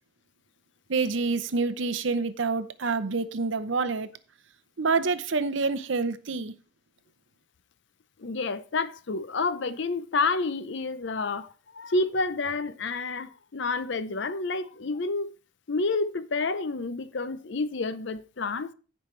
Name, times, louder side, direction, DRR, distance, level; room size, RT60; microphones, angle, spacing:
voice 1, 0.9-4.1 4.8-6.5, right 4 dB, 65° right, 0.7 m, -27 dB
voice 2, 8.2-15.3 15.7-18.7, left 3 dB, 60° left, 0.6 m, -29 dB
16.0 x 5.5 x 3.2 m
head